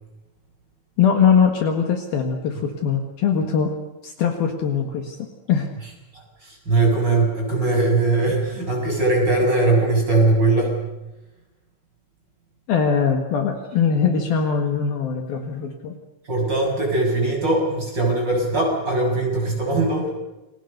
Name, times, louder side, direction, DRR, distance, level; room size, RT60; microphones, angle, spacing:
voice 1, 1.0-3.7 4.0-5.2 5.5-5.7 12.7-16.0, left 6 dB, 60° left, 4 dB, 3.3 m, -21 dB
voice 2, 6.7-10.8 16.3-20.1, right 2 dB, 25° right, 1 dB, 7.3 m, -20 dB
29.5 x 22.5 x 6.7 m, 1.0 s
omnidirectional pair, 5.2 m